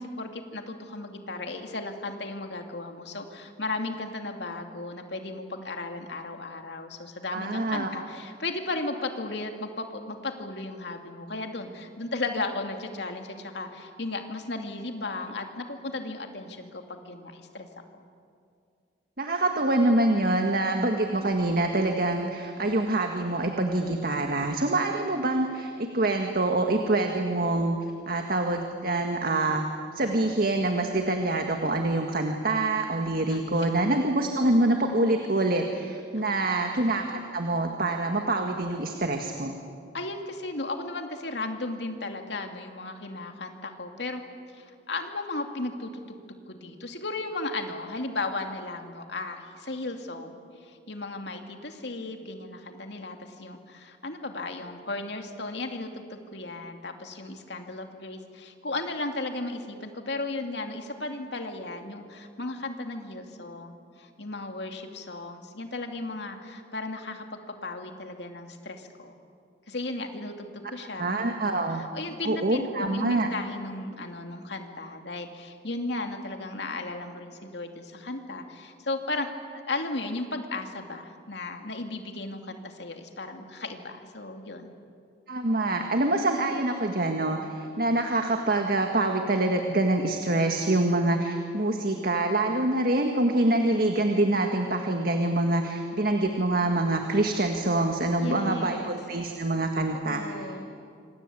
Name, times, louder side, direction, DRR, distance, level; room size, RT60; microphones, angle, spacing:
voice 1, 0.0-17.7 17.9-18.1 33.3-33.7 36.1-36.2 36.5-36.7 39.9-44.2 44.5-46.2 46.5-50.3 50.6-69.1 69.7-71.0 71.8-79.3 79.7-84.8 98.2-98.9 99.9-100.6, left 2 dB, 70° left, 4 dB, 2.6 m, -35 dB
voice 2, 7.3-7.9 19.2-27.8 28.1-29.7 29.9-39.6 71.0-71.8 72.2-73.3 85.3-100.2, right 2 dB, 55° right, 4 dB, 1.8 m, -25 dB
26.5 x 26.5 x 8.6 m, 2.3 s
head